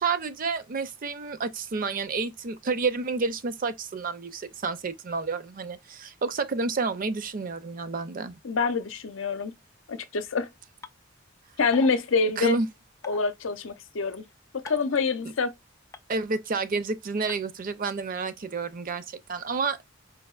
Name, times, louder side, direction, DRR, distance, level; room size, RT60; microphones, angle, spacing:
voice 1, 0.0-8.4 12.4-12.7 16.1-19.9, right 4 dB, 45° right, 0.5 m, -30 dB
voice 2, 8.4-9.5 9.9-10.5 11.6-12.6 13.0-14.2 14.5-15.5, left 4 dB, 80° left, 0.6 m, -26 dB
sound 1, 10.8-10.9 11.7-11.9 13.0-13.2 14.7-14.9 15.9-16.0 17.3-17.4, left 3 dB, 15° left, 0.3 m, -41 dB
4.6 x 2.8 x 2.3 m
head